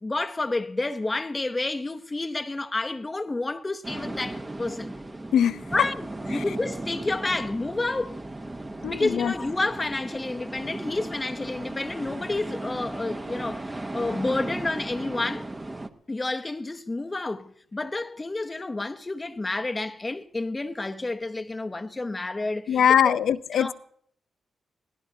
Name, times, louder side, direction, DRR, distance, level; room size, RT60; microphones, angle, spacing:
voice 1, 0.0-4.9 5.7-6.1 6.3-8.2 8.9-15.4 16.1-23.0 23.5-23.7, left 2 dB, 20° left, 0.7 m, -30 dB
sound 1, 3.8-15.9, right 2 dB, 20° right, 0.8 m, -36 dB
voice 2, 8.8-9.3 22.7-23.7, left 9 dB, 80° left, 0.5 m, -22 dB
23.5 x 17.5 x 2.7 m
wide cardioid pair, 125°, 0 cm